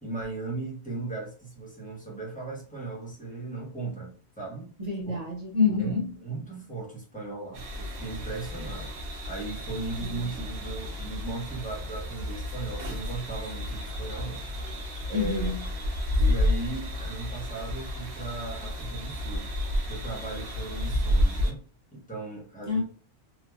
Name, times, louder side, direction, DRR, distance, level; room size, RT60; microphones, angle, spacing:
voice 1, 0.0-4.7 5.1-5.2 5.8-5.9 6.2-8.9 9.3-14.5 15.1-15.5 16.2-19.5 19.9-21.6 21.9-22.8, right 3 dB, 10° left, 1.0 m, -37 dB
voice 2, 4.8-6.1 10.0-10.2 15.1-15.6 22.7-22.8, left 4 dB, 45° right, 0.7 m, -27 dB
sound 1, 7.5-21.5, left 1 dB, 70° right, 1.0 m, -31 dB
3.0 x 2.4 x 2.3 m
omnidirectional pair, 1.1 m